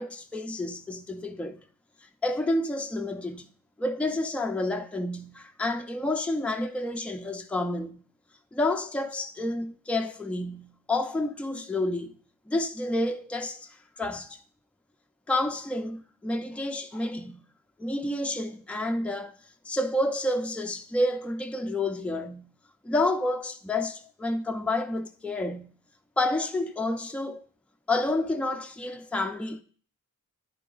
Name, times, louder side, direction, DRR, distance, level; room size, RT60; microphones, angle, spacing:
voice 1, 0.0-1.6 2.2-3.5 3.8-8.0 8.5-12.2 12.5-14.4 15.3-17.4 17.8-19.3 19.6-22.5 22.8-25.7 26.2-27.4 27.9-29.6, left 2 dB, 5° left, 0.4 m, -29 dB
10.5 x 4.0 x 3.8 m
wide cardioid pair, 130°, 32 cm